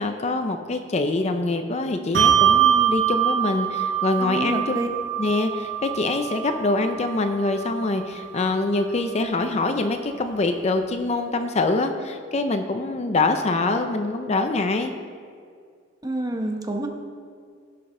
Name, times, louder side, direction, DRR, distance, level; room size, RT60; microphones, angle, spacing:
voice 1, 0.0-4.8 5.2-14.9, left 2 dB, 35° left, 7 dB, 0.5 m, -24 dB
Bell, 2.1-9.0, right 9 dB, 70° right, 0.9 m, -24 dB
voice 2, 4.2-4.9 16.0-16.9, right 1 dB, 20° right, 3 dB, 0.9 m, -28 dB
16.5 x 6.0 x 3.8 m, 2.1 s
head